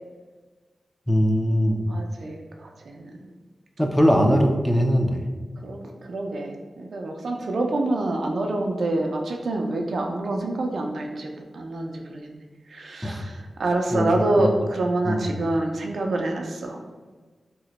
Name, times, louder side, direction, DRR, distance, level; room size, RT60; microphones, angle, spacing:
voice 1, 1.1-1.9 3.8-5.2 13.0-13.2 13.9-14.2 15.0-15.2, equal, 5° left, 2 dB, 0.4 m, -20 dB
voice 2, 1.9-3.3 5.6-12.4 12.7-16.8, right 2 dB, 75° right, 2 dB, 0.4 m, -27 dB
2.9 x 2.1 x 4.0 m, 1.4 s
cardioid pair, 65°, 0 cm